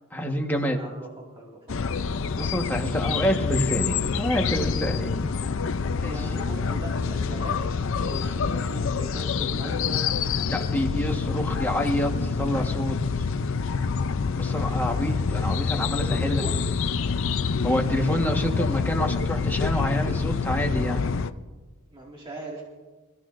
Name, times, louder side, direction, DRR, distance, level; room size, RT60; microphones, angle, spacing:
voice 1, 0.1-0.8 2.3-5.1 6.0-6.2 10.5-12.9 14.3-16.4 17.6-21.0, equal, 10° left, 1 dB, 1.3 m, -27 dB
voice 2, 0.6-1.6 1.9-2.0 6.0-10.1 16.2-16.6 21.9-22.6, right 1 dB, 20° right, -4 dB, 2.0 m, -39 dB
sound 1, 1.7-21.3, left 5 dB, 60° left, 0.5 m, -27 dB
27.0 x 14.5 x 2.6 m, 1.3 s
head